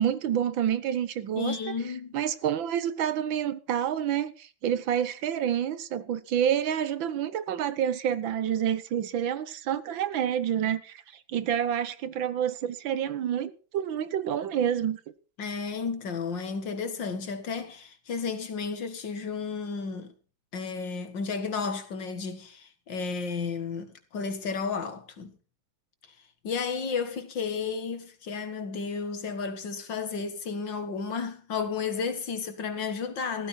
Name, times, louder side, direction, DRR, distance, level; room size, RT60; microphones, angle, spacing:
voice 1, 0.0-1.6 2.1-11.0 11.3-15.0, right 9 dB, 75° right, 1.7 m, -28 dB
voice 2, 1.4-2.1 15.4-20.1 20.5-25.3 26.4-33.5, left 5 dB, 65° left, 2.4 m, -32 dB
15.5 x 14.0 x 4.4 m
omnidirectional pair, 2.1 m